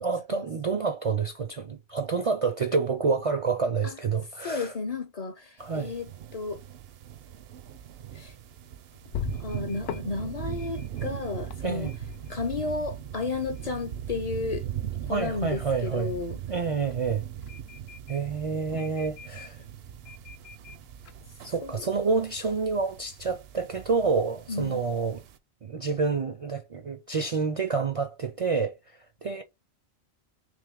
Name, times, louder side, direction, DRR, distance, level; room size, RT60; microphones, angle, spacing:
voice 1, 0.0-4.7 5.6-5.9 11.6-11.9 15.1-16.1 16.5-17.2 18.1-19.6 21.4-25.2 25.6-29.4, right 4 dB, 50° right, 0.4 m, -28 dB
voice 2, 4.4-6.6 8.1-8.3 9.4-11.9 12.3-14.6 15.1-16.4 21.6-21.9 24.5-24.8, left 4 dB, 45° left, 0.6 m, -33 dB
sound 1, 5.6-25.4, right 10 dB, 70° right, 0.8 m, -40 dB
sound 2, 7.8-22.2, left 8 dB, 75° left, 0.8 m, -45 dB
3.4 x 3.0 x 3.5 m
omnidirectional pair, 1.1 m